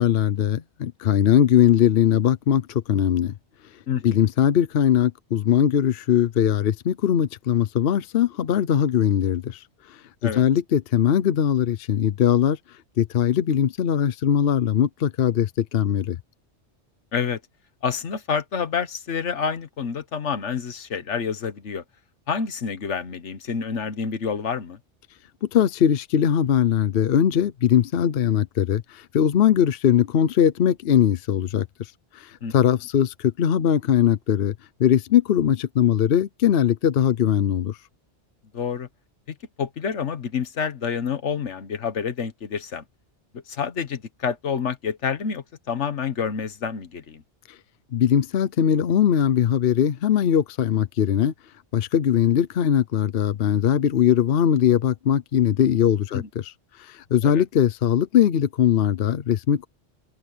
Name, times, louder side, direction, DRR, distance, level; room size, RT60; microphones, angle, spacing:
voice 1, 0.0-3.3 4.0-9.6 10.2-12.6 13.0-16.2 25.5-31.7 32.1-34.5 34.8-37.8 47.9-51.3 51.7-56.2 56.8-59.7, left 9 dB, 60° left, 0.9 m, -20 dB
voice 2, 3.9-4.3 10.2-10.5 17.1-17.4 17.8-21.8 22.3-24.8 32.4-32.5 38.5-38.9 39.6-42.8 43.5-47.2 56.1-56.3 57.2-57.4, left 6 dB, 80° left, 1.5 m, -28 dB
omnidirectional pair, 1.2 m